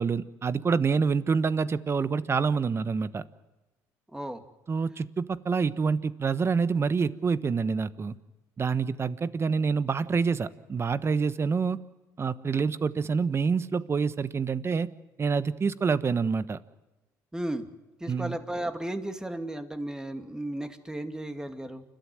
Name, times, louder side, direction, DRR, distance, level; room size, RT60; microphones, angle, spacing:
voice 1, 0.0-3.2 4.7-8.1 8.6-11.8 12.2-14.9 15.2-16.6 18.1-18.4, right 5 dB, 35° right, 14 dB, 1.2 m, -27 dB
voice 2, 4.1-4.4 17.3-17.7 18.0-21.8, right 1 dB, 10° right, 7 dB, 2.5 m, -34 dB
29.0 x 13.0 x 7.9 m, 1.1 s
supercardioid pair, 70°, 8 cm